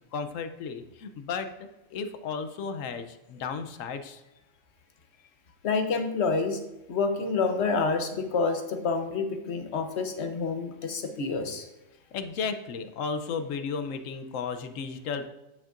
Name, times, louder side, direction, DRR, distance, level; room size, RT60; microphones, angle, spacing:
voice 1, 0.1-1.5 1.9-4.2 12.1-15.3, left 5 dB, 85° left, 9 dB, 1.1 m, -34 dB
voice 2, 5.6-6.6 6.9-11.7, left 4 dB, 60° left, 6 dB, 1.1 m, -28 dB
8.9 x 8.1 x 2.5 m, 0.98 s
omnidirectional pair, 1.3 m